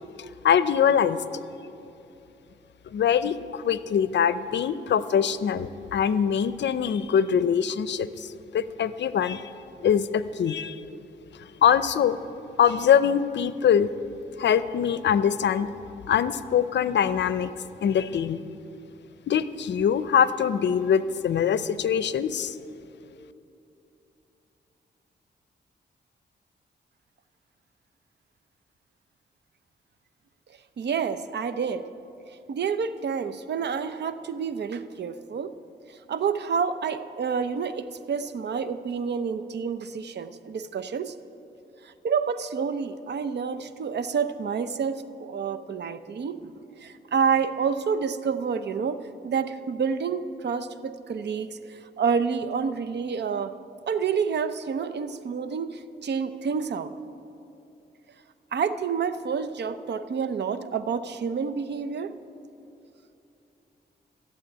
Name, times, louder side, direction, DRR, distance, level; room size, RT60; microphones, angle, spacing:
voice 1, 0.2-1.2 2.9-8.1 8.5-9.5 9.8-10.8 11.6-12.2 12.6-13.9 14.4-15.7 16.1-17.5 17.8-18.4 19.3-22.5, left 8 dB, 75° left, 14 dB, 0.6 m, -23 dB
voice 2, 30.8-31.9 32.5-35.5 35.9-41.1 41.8-53.5 53.9-56.9 58.5-62.2, right 6 dB, 70° right, 12 dB, 0.7 m, -29 dB
14.5 x 7.6 x 9.9 m, 2.8 s
cardioid pair, 95°, 19 cm